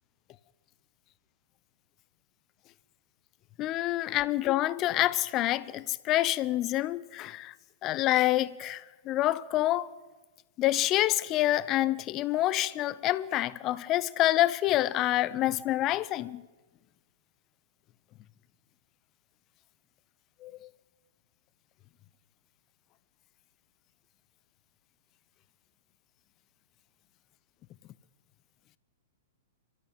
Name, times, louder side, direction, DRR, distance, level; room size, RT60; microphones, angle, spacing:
voice 1, 3.6-7.5 7.8-9.9 10.6-16.4 20.4-20.7, left 15 dB, 30° left, 0.8 m, -27 dB
29.0 x 13.0 x 9.0 m
figure-of-eight pair, 105°, 0 cm